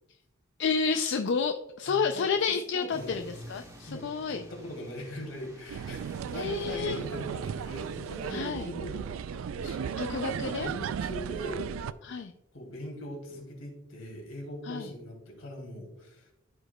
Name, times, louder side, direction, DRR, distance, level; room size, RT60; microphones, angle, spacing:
voice 1, 0.6-3.2 3.5-4.4 6.3-7.0 8.3-8.7 10.0-10.7 12.0-12.3 14.6-14.9, left 5 dB, 60° left, 7 dB, 0.4 m, -30 dB
voice 2, 1.9-3.2 3.8-11.8 12.5-16.3, equal, 85° left, 0 dB, 2.6 m, -41 dB
sound 1, 2.9-8.4, equal, 15° right, 1.2 m, -50 dB
sound 2, 5.7-11.9, right 7 dB, 80° right, 0.3 m, -35 dB
14.0 x 4.8 x 2.2 m, 0.92 s
head